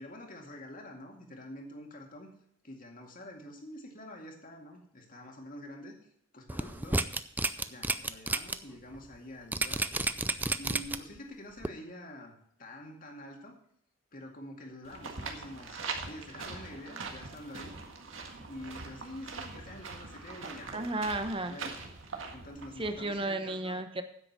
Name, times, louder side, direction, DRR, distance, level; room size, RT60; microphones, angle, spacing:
voice 1, 0.0-2.3 2.6-5.9 6.3-7.1 7.6-9.9 10.6-12.3 12.6-13.5 14.1-17.7 18.5-20.7 21.4-21.8 22.3-23.8, left 1 dB, 45° left, 1 dB, 2.2 m, -47 dB
sound 1, 6.5-8.5 8.9-9.0 9.5-11.2 11.6-11.7, right 2 dB, 10° right, 0.4 m, -30 dB
sound 2, 14.8-23.2, right 4 dB, 80° right, 1.7 m, -42 dB
voice 2, 20.7-21.6 22.8-24.0, right 2 dB, 25° right, 8 dB, 1.0 m, -33 dB
9.8 x 7.9 x 6.1 m, 0.69 s
head